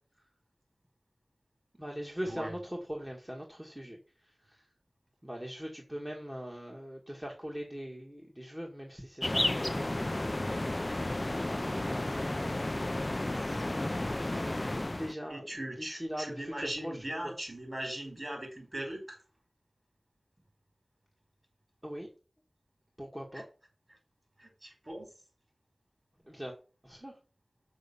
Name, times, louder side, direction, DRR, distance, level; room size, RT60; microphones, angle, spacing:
voice 1, 1.8-4.7 5.2-10.3 11.4-13.4 13.8-13.9 14.7-15.4 15.8-17.3 21.8-22.1 23.0-23.4 26.2-26.6 26.8-27.2, equal, 15° right, 0 dB, 1.9 m, -41 dB
sound 1, 9.2-15.1, left 1 dB, 30° left, 0.4 m, -32 dB
voice 2, 15.3-19.2 23.3-23.4 24.4-25.1, right 1 dB, 35° right, 3 dB, 4.9 m, -39 dB
6.4 x 6.1 x 7.0 m, 0.36 s
wide cardioid pair, 55°, 0 cm